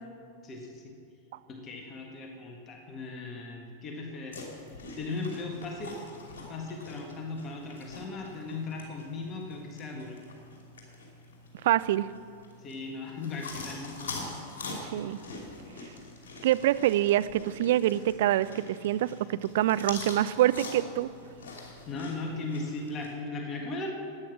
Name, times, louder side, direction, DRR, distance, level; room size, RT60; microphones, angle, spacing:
voice 1, 0.4-0.9 1.5-4.5 4.9-5.9 6.3-10.2 12.6-14.4 21.8-23.9, left 3 dB, 30° left, 1 dB, 1.7 m, -37 dB
sound 1, 4.3-23.1, left 3 dB, 60° left, 2.8 m, -44 dB
voice 2, 11.6-12.1 14.7-15.2 16.4-21.1, right 13 dB, 55° right, 16 dB, 0.3 m, -25 dB
13.0 x 9.6 x 6.1 m, 2.3 s
figure-of-eight pair, 90°, 0 cm